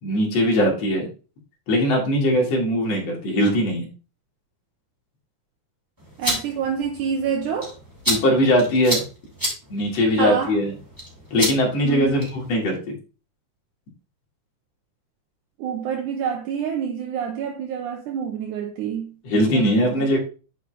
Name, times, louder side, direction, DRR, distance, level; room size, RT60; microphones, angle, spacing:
voice 1, 0.0-1.1 1.7-3.9 8.1-9.0 9.7-10.7 11.3-12.9 19.2-20.2, equal, 55° left, 2.8 m, -20 dB
sound 1, 6.0-12.5, equal, 5° right, 2.4 m, -31 dB
voice 2, 6.2-7.7 10.2-10.6 11.8-12.3 15.6-20.1, right 7 dB, 75° right, 2.1 m, -27 dB
9.5 x 5.2 x 3.3 m
omnidirectional pair, 3.9 m